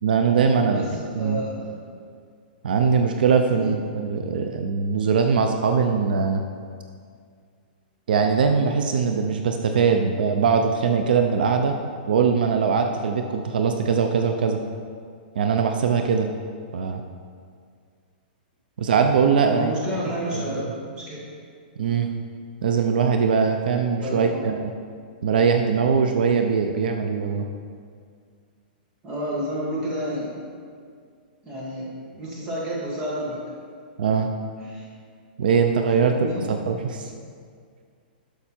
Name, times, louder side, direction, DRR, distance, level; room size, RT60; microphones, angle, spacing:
voice 1, 0.0-0.8 1.2-1.4 2.6-6.4 8.1-11.8 12.1-14.6 15.3-16.3 16.7-17.0 18.8-19.7 20.3-20.4 21.8-22.1 22.6-24.7 25.2-27.5 34.0-34.3 35.4-36.2 36.5-37.1, right 6 dB, 65° right, 5 dB, 0.6 m, -21 dB
voice 2, 0.7-1.9 3.5-3.7 19.4-21.3 24.0-24.5 29.0-30.3 31.4-33.4 34.6-34.9 36.0-36.5, equal, 15° right, -5 dB, 1.8 m, -30 dB
11.5 x 6.0 x 4.4 m, 2.1 s
hypercardioid pair, 180°, 5 cm